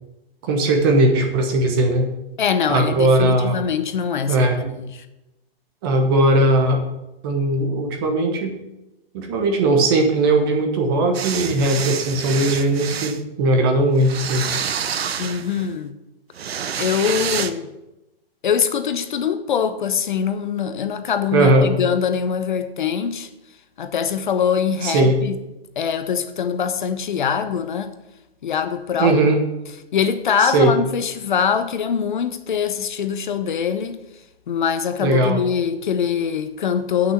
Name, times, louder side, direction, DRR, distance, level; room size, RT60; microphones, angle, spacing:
voice 1, 0.4-2.1 2.7-3.6 4.3-4.6 5.8-6.8 7.2-8.5 9.1-14.4 21.3-21.7 24.8-25.2 29.0-29.4 30.4-30.7 35.0-35.4, right 2 dB, 25° right, 1.2 m, -18 dB
voice 2, 2.4-5.1 15.2-15.9 16.8-17.7 18.4-23.3 23.8-25.4 25.8-27.9 28.4-29.4 29.9-34.0 34.5-37.1, left 7 dB, 50° left, 0.8 m, -23 dB
sound 1, 11.1-13.2 14.0-15.7 16.3-17.5, right 7 dB, 80° right, 1.0 m, -28 dB
9.1 x 6.2 x 7.2 m
hypercardioid pair, 170°, 30 cm